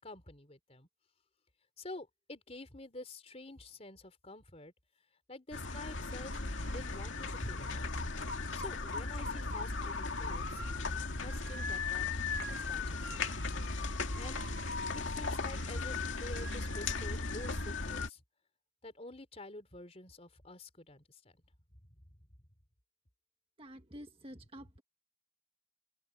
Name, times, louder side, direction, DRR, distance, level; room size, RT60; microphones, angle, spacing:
voice 1, 0.0-0.9 1.8-4.7 5.3-7.9 8.5-10.6 11.2-13.4 14.2-14.4 15.1-18.2 18.8-21.4 21.8-22.0, left 2 dB, 35° left, 3.9 m, -48 dB
sound 1, 5.5-18.1, left 3 dB, 80° left, 2.1 m, -37 dB
voice 2, 23.6-24.8, equal, 30° right, 1.6 m, -49 dB
head